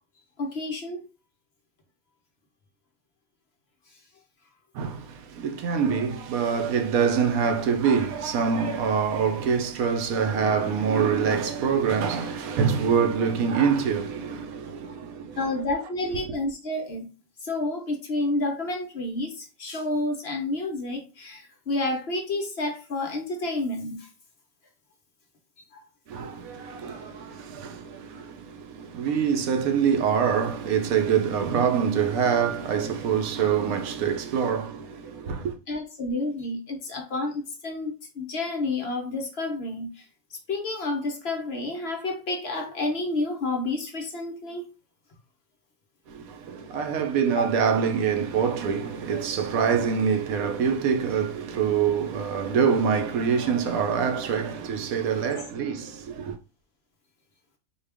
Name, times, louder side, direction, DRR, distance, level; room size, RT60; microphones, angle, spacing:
voice 1, 0.4-1.0 15.4-17.1 17.4-24.1 25.7-25.8 26.2-26.3 35.7-40.0 40.5-44.6 47.3-47.4, left 2 dB, 50° left, 0.9 m, -30 dB
voice 2, 4.7-15.4 26.1-35.6 46.1-56.4, right 6 dB, 80° right, 1.1 m, -25 dB
4.3 x 2.3 x 3.4 m
omnidirectional pair, 1.5 m